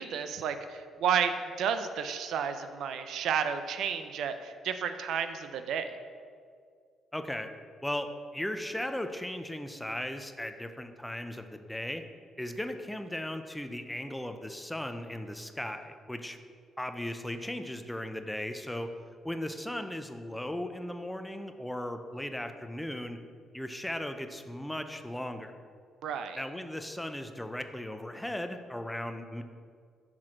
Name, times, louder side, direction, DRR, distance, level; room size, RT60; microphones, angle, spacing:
voice 1, 0.0-6.0 26.0-26.4, right 7 dB, 75° right, 9 dB, 0.4 m, -32 dB
voice 2, 7.1-7.5 7.8-12.0 12.4-16.4 16.8-18.9 19.2-23.2 23.5-25.5 26.3-29.4, left 1 dB, 5° left, 7 dB, 0.5 m, -37 dB
6.0 x 4.4 x 6.3 m, 2.2 s
cardioid pair, 90°, 0 cm